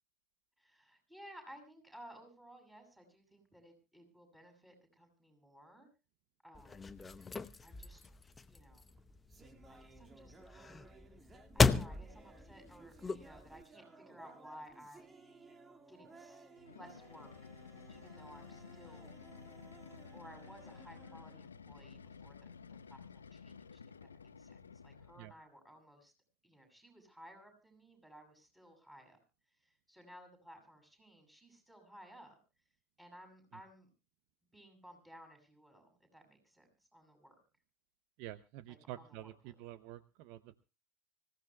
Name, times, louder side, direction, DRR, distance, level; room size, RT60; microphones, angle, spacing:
voice 1, 0.6-5.9 6.4-7.0 7.6-8.0 8.5-8.9 9.7-10.4 11.0-15.1 15.9-17.3 17.9-19.1 20.1-26.1 26.4-29.2 29.6-32.4 33.0-33.9 34.5-37.3 38.7-39.5, equal, 5° right, 4 dB, 7.8 m, -57 dB
sound 1, 6.5-13.6, left 4 dB, 15° left, 0.8 m, -36 dB
sound 2, 8.8-22.2, right 3 dB, 20° right, 2.0 m, -59 dB
sound 3, 16.6-25.3, left 5 dB, 85° left, 0.8 m, -53 dB
voice 2, 38.2-40.5, right 14 dB, 55° right, 14 dB, 0.8 m, -48 dB
25.0 x 16.5 x 2.3 m, 0.30 s
figure-of-eight pair, 80°, 0 cm